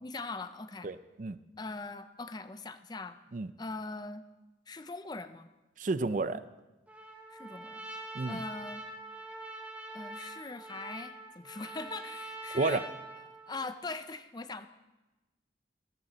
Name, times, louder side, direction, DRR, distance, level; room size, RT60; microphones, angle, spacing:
voice 1, 0.0-0.9 1.6-3.2 3.6-4.2 4.7-5.5 7.3-7.8 8.2-8.8 9.9-12.8 13.5-14.7, left 3 dB, 20° left, 11 dB, 0.5 m, -41 dB
voice 2, 0.8-1.4 3.3-3.5 5.8-6.4 8.1-8.4 12.5-12.8, right 3 dB, 45° right, 13 dB, 0.5 m, -31 dB
Trumpet, 6.9-13.7, right 2 dB, 10° right, 2.2 m, -44 dB
15.5 x 14.0 x 4.2 m, 1.1 s
head